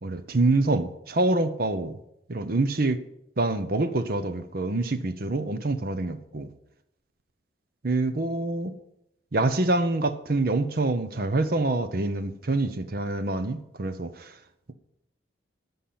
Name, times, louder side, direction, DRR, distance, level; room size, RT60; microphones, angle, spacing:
voice 1, 0.0-2.0 2.3-3.0 3.4-6.5 7.8-8.7 9.3-14.4, right 2 dB, 50° right, 10 dB, 0.8 m, -26 dB
13.0 x 5.6 x 8.6 m, 0.81 s
head